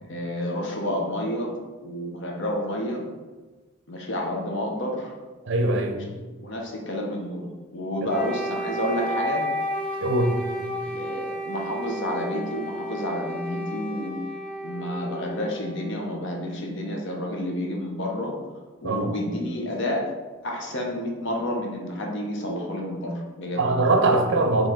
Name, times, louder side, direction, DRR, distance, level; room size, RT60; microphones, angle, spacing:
voice 1, 0.0-1.5 1.8-3.0 3.9-5.1 6.4-7.5 7.7-9.5 10.7-14.2 14.6-18.3 18.8-20.1 20.4-23.7, left 1 dB, 60° left, 0 dB, 0.9 m, -30 dB
voice 2, 5.5-6.0 8.0-8.1 10.0-10.5 18.8-19.1 23.6-24.7, right 2 dB, 60° right, 5 dB, 0.5 m, -22 dB
Wind instrument woodwind instrument, 8.1-16.1, equal, 5° left, 0.5 m, -32 dB
4.6 x 3.0 x 3.6 m, 1.3 s
head